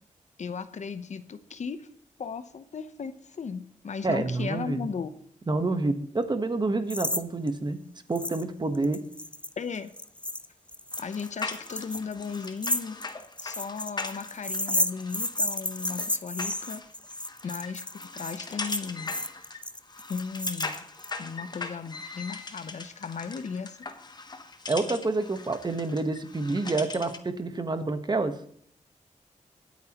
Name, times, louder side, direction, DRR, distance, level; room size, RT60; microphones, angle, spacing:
voice 1, 0.4-1.9 2.2-5.1 9.6-9.9 11.0-13.0 13.4-16.8 17.4-19.1 20.1-20.8 21.2-23.8, left 5 dB, 60° left, 11 dB, 0.8 m, -36 dB
voice 2, 4.0-4.9 5.5-7.8 8.1-9.0 24.7-28.3, right 3 dB, 35° right, 8 dB, 1.2 m, -28 dB
sound 1, 6.9-7.2 7.5-7.6 8.2-8.4 8.7-21.1, left 1 dB, 10° left, 0.5 m, -32 dB
sound 2, 10.9-27.3, left 3 dB, 30° left, 0.9 m, -40 dB
25.5 x 8.5 x 3.0 m, 0.64 s
wide cardioid pair, 115°, 13 cm